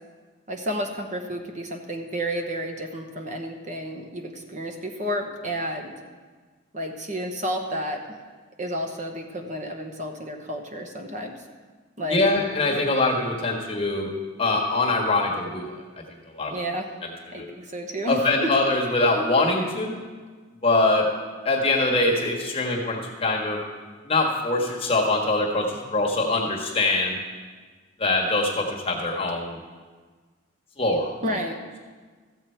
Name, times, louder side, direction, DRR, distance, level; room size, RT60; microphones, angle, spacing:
voice 1, 0.5-5.9 6.7-8.0 8.6-11.4 12.0-12.3 16.5-16.9 17.3-18.5 31.2-31.6, equal, 35° right, 4 dB, 1.0 m, -31 dB
voice 2, 12.1-14.1 14.4-15.7 16.4-16.5 17.3-17.5 18.1-19.9 20.6-21.1 21.4-23.6 24.0-27.2 28.0-29.6 30.8-31.1, left 2 dB, 30° left, -1 dB, 1.4 m, -23 dB
14.5 x 7.7 x 4.4 m, 1.5 s
head